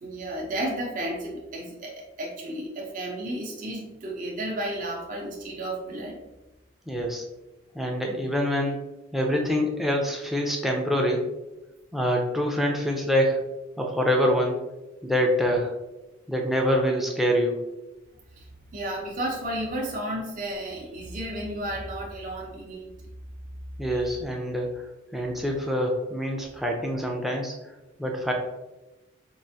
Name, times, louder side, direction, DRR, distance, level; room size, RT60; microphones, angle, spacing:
voice 1, 0.0-6.2 18.4-22.9 23.9-24.1 26.4-26.5, right 1 dB, 40° right, -2 dB, 0.6 m, -33 dB
voice 2, 6.9-7.2 7.7-8.9 9.1-11.2 11.9-13.4 13.8-14.7 15.0-15.7 16.3-17.6 23.8-24.8 25.1-27.5 28.0-28.3, equal, ahead, -1 dB, 0.5 m, -25 dB
4.6 x 2.4 x 2.6 m, 1.0 s
head